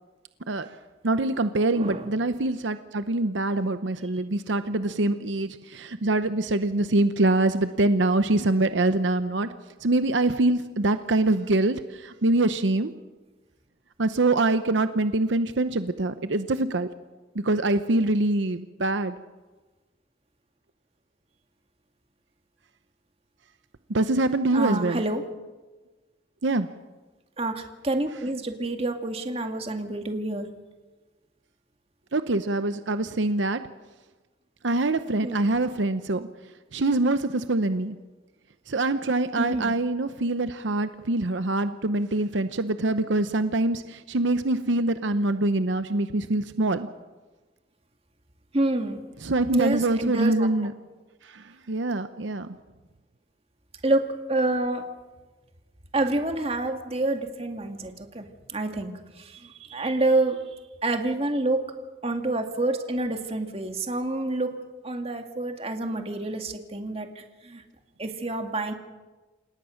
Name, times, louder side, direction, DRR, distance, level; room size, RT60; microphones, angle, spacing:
voice 1, 1.0-9.5 9.8-12.9 14.0-16.9 17.3-19.1 23.9-25.0 26.4-26.7 32.1-33.6 34.6-36.3 36.7-37.9 38.7-46.9 49.2-50.7 51.3-52.5, right 2 dB, 80° right, 11 dB, 0.8 m, -24 dB
voice 2, 1.7-2.1 24.5-25.2 27.4-30.5 35.2-35.5 39.4-39.7 48.5-49.0 49.5-50.5 53.8-54.9 55.9-58.9 59.2-60.4 60.8-61.6 62.0-67.6 68.0-68.7, right 2 dB, 30° right, 5 dB, 2.1 m, -28 dB
28.0 x 17.5 x 6.5 m, 1.3 s
head